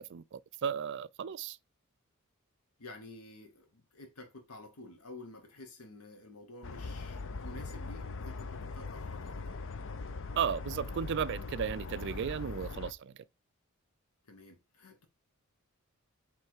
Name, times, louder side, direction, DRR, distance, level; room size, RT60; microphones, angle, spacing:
voice 1, 0.0-1.6 10.4-13.2, right 7 dB, 55° right, 0.4 m, -35 dB
voice 2, 2.8-9.6 14.2-15.1, left 2 dB, 80° left, 1.1 m, -51 dB
sound 1, 6.6-12.9, left 3 dB, 60° left, 0.6 m, -41 dB
8.0 x 3.2 x 4.7 m
head